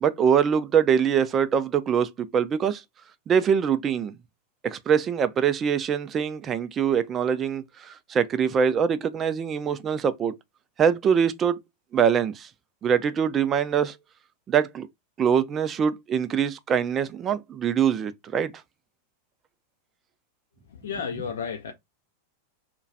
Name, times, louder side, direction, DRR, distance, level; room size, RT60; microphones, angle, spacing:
voice 1, 0.0-2.8 3.3-4.2 4.6-10.3 10.8-11.6 11.9-12.5 12.8-14.0 14.5-14.9 15.2-18.5, right 7 dB, 25° right, 0.3 m, -23 dB
voice 2, 20.7-21.7, left 6 dB, 65° left, 0.4 m, -32 dB
2.2 x 2.1 x 2.6 m
figure-of-eight pair, 90°, 0 cm